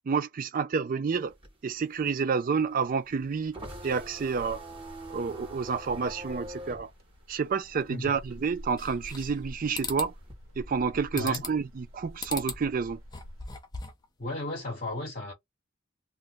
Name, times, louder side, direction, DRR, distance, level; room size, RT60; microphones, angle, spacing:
voice 1, 0.1-1.3 1.6-4.6 5.1-6.9 7.3-10.1 10.6-13.0, right 5 dB, 40° right, 0.3 m, -29 dB
sound 1, 1.1-8.2 8.6-10.3, right 1 dB, 25° right, 1.2 m, -44 dB
sound 2, 3.0-13.5, equal, 70° right, 1.2 m, -48 dB
sound 3, 8.8-9.4 9.7-10.1 11.2-11.7 12.2-12.6 13.0-14.1, left 5 dB, 20° left, 0.6 m, -38 dB
voice 2, 14.2-15.3, left 1 dB, 40° left, 1.0 m, -34 dB
2.6 x 2.1 x 3.8 m
head